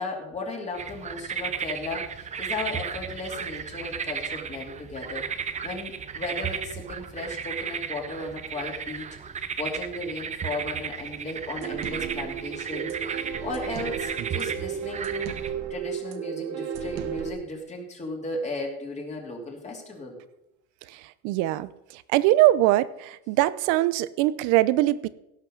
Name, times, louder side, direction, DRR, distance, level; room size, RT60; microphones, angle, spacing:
voice 1, 0.0-5.2 5.6-9.2 9.6-15.4 15.7-20.2, left 2 dB, 25° left, 0 dB, 3.0 m, -35 dB
sound 1, 0.7-15.5, right 7 dB, 25° right, 0.7 m, -34 dB
sound 2, 11.6-17.3, right 8 dB, 60° right, 1.5 m, -33 dB
voice 2, 21.2-21.7 22.1-25.1, right 15 dB, 80° right, 17 dB, 0.8 m, -21 dB
17.0 x 5.9 x 6.5 m, 0.88 s
cardioid pair, 135°, 29 cm